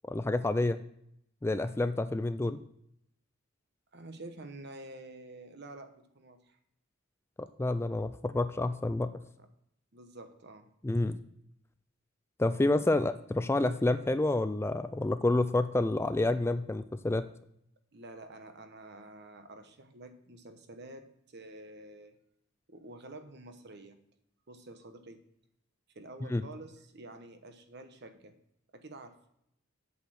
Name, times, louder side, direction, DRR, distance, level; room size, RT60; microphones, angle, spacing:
voice 1, 0.1-0.8 1.4-2.6 7.4-9.1 10.8-11.2 12.4-17.2 26.3-26.4, left 2 dB, 15° left, 11 dB, 0.3 m, -29 dB
voice 2, 3.9-6.6 9.4-9.5 9.9-10.7 17.9-22.2 22.7-24.0 24.5-25.2 25.9-28.3 28.7-29.1, right 2 dB, 55° right, 8 dB, 1.1 m, -49 dB
8.3 x 6.4 x 7.7 m, 0.75 s
head